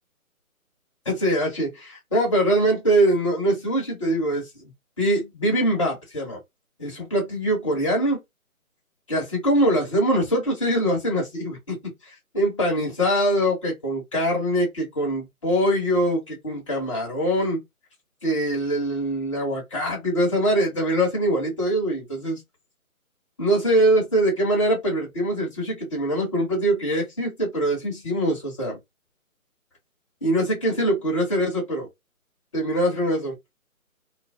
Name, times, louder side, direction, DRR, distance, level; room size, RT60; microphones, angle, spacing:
voice 1, 1.1-4.7 5.0-6.4 6.8-8.2 9.1-11.8 12.3-17.6 18.2-22.4 23.4-28.8 30.2-31.9 32.5-33.3, right 1 dB, 20° left, 0.8 m, -23 dB
2.3 x 2.1 x 2.5 m
figure-of-eight pair, 155°, 43 cm